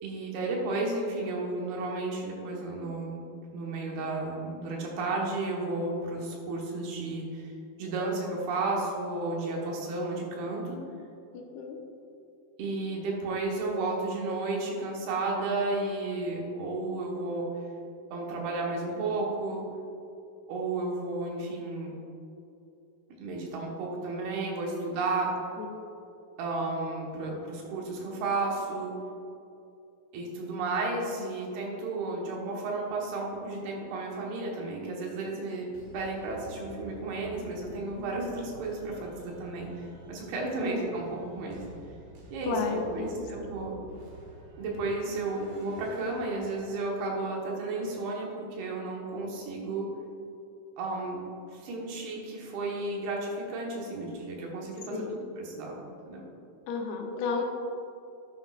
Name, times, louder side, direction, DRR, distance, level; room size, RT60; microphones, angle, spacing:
voice 1, 0.0-3.2 3.5-7.5 7.8-10.8 12.6-17.6 18.1-19.7 20.5-21.9 23.2-25.3 26.4-28.9 30.1-41.6 42.3-43.7 44.5-49.9 50.8-51.2 51.5-55.7 56.1-56.2, right 2 dB, 80° right, -2 dB, 3.4 m, -33 dB
voice 2, 11.3-11.8 25.6-25.7 40.4-40.8 42.5-43.5 54.9-55.1 56.7-57.4, left 4 dB, 80° left, 2 dB, 2.8 m, -33 dB
sound 1, 35.7-47.1, right 2 dB, 60° right, 1.8 m, -50 dB
12.0 x 8.0 x 2.5 m, 2.7 s
omnidirectional pair, 4.4 m